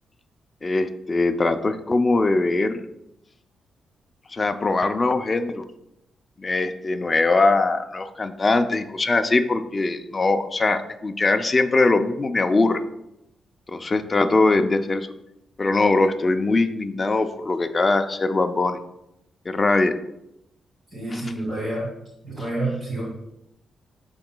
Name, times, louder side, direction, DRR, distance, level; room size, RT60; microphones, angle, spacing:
voice 1, 0.6-2.8 4.3-5.6 6.4-12.8 13.7-15.1 15.6-18.8 19.5-19.9 21.1-21.2 22.4-22.5, left 3 dB, 25° left, 7 dB, 0.4 m, -21 dB
voice 2, 20.9-21.9 22.2-23.0, right 2 dB, 35° right, -5 dB, 2.0 m, -28 dB
11.5 x 3.8 x 2.2 m, 0.85 s
cardioid pair, 120°, 0 cm